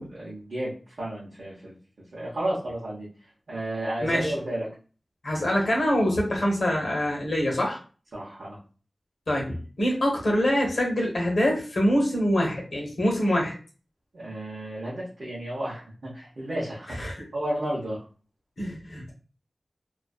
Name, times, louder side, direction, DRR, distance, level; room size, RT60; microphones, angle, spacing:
voice 1, 0.1-1.8 2.1-3.1 3.5-4.7 8.1-8.6 14.1-17.1 17.3-18.0, right 1 dB, 85° right, -7 dB, 0.7 m, -32 dB
voice 2, 4.0-4.3 5.2-7.8 9.3-13.6 17.0-17.2 18.6-19.1, equal, 85° left, 0 dB, 0.8 m, -25 dB
2.4 x 2.3 x 2.3 m, 0.37 s
wide cardioid pair, 55°, 0 cm